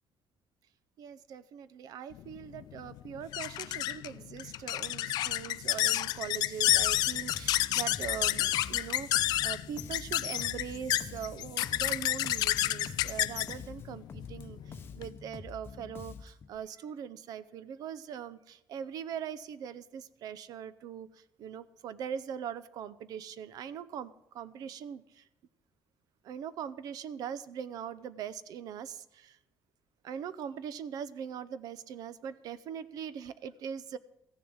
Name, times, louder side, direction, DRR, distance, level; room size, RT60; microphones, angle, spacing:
voice 1, 1.0-14.6 14.9-21.1 21.4-25.2 26.2-29.4 30.0-34.0, right 8 dB, 60° right, 16 dB, 0.7 m, -41 dB
sound 1, 2.2-15.1, left 14 dB, 70° left, 0.4 m, -30 dB
Bass guitar, 6.7-16.6, left 5 dB, 30° left, 0.9 m, -47 dB
15.0 x 7.1 x 7.9 m, 0.88 s
cardioid pair, 165°, 7 cm